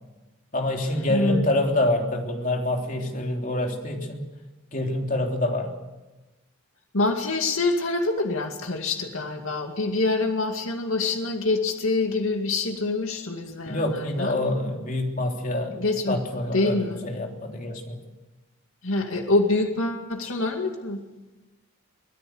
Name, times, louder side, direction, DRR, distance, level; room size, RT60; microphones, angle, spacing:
voice 1, 0.5-4.2 4.7-5.7 13.6-15.8 16.1-16.8 17.0-18.0, left 1 dB, 40° left, 2 dB, 3.4 m, -26 dB
voice 2, 1.1-1.5 6.9-14.4 15.7-16.2 16.5-17.0 18.8-21.0, left 2 dB, 85° left, 3 dB, 2.3 m, -25 dB
24.5 x 17.5 x 7.9 m, 1.1 s
head